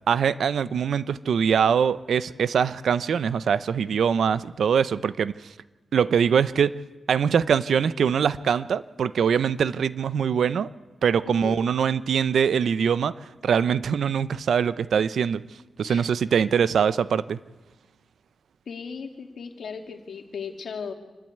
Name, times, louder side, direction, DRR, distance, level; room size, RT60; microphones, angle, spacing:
voice 1, 0.1-5.3 5.9-6.7 7.1-10.7 11.0-13.1 13.4-15.4 15.8-17.4, right 7 dB, 80° right, 16 dB, 0.6 m, -23 dB
voice 2, 11.3-11.6 15.9-16.1 16.4-16.6 18.7-20.9, left 6 dB, 75° left, 5 dB, 2.3 m, -37 dB
26.5 x 12.0 x 9.2 m, 1.2 s
wide cardioid pair, 110°, 0 cm